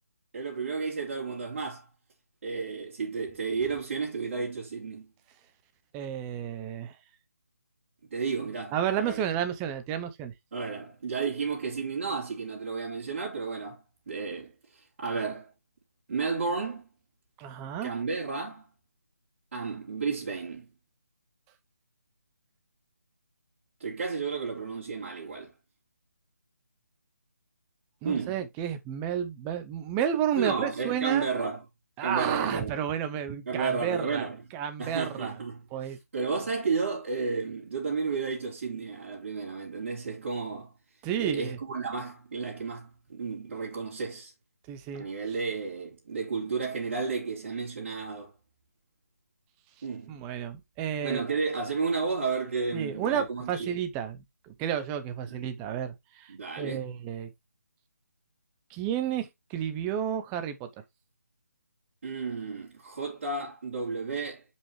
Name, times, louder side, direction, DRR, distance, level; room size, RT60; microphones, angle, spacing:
voice 1, 0.3-1.9 2.4-5.0 8.1-9.2 10.5-15.5 16.1-16.9 17.8-18.7 19.5-20.7 23.8-25.5 28.0-28.4 30.3-31.6 32.0-32.8 33.5-34.4 34.8-40.7 41.2-44.3 45.0-48.3 49.8-50.2 51.0-53.8 56.3-56.9 62.0-64.4, right 4 dB, 45° right, 3.4 m, -32 dB
voice 2, 5.9-6.9 8.7-10.3 17.4-17.9 28.0-31.3 32.0-34.3 34.5-35.4 35.7-36.0 41.0-41.6 44.7-45.1 50.1-51.2 52.7-56.3 56.6-57.3 58.7-60.7, right 9 dB, 10° right, 0.6 m, -31 dB
7.3 x 5.6 x 3.1 m
figure-of-eight pair, 160°, 8 cm